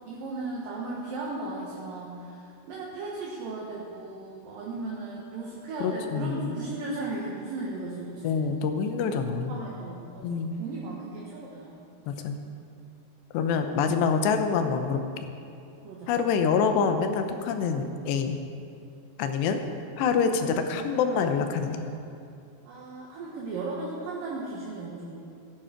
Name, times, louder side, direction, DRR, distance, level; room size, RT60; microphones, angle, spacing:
voice 1, 0.1-8.4 9.5-11.8 15.8-16.1 21.0-21.2 22.6-25.2, right 2 dB, 65° right, -4 dB, 2.7 m, -36 dB
voice 2, 5.8-6.6 8.2-9.6 10.2-10.6 12.1-12.4 13.3-15.1 16.1-18.4 19.2-19.6 20.0-22.0, left 5 dB, 85° left, 7 dB, 3.0 m, -26 dB
15.5 x 10.5 x 5.1 m, 2.5 s
omnidirectional pair, 4.9 m